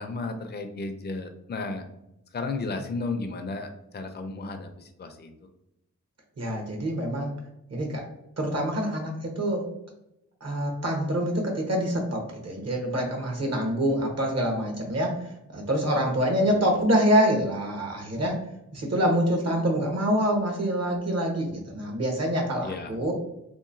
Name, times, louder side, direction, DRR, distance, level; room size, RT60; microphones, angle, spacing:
voice 1, 0.0-1.8 2.3-5.3 16.5-16.8 22.6-23.0, left 3 dB, 35° left, 6 dB, 0.4 m, -34 dB
voice 2, 6.4-7.3 7.7-8.0 8.4-9.7 10.4-15.2 15.5-18.4 18.7-23.1, equal, 55° right, 1 dB, 1.0 m, -26 dB
2.9 x 2.2 x 2.5 m, 0.84 s
cardioid pair, 45°, 30 cm